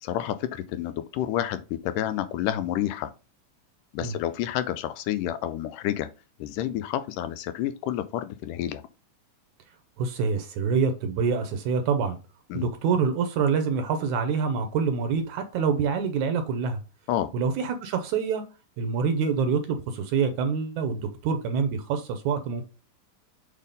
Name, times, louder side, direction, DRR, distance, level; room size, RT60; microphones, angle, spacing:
voice 1, 0.0-3.1 3.9-6.1 6.4-8.8 12.5-12.7 17.1-17.3, left 12 dB, 80° left, 2.0 m, -29 dB
voice 2, 10.0-12.2 12.5-16.8 17.3-18.4 18.8-22.6, right 5 dB, 75° right, 1.9 m, -26 dB
6.4 x 3.7 x 5.1 m
omnidirectional pair, 3.9 m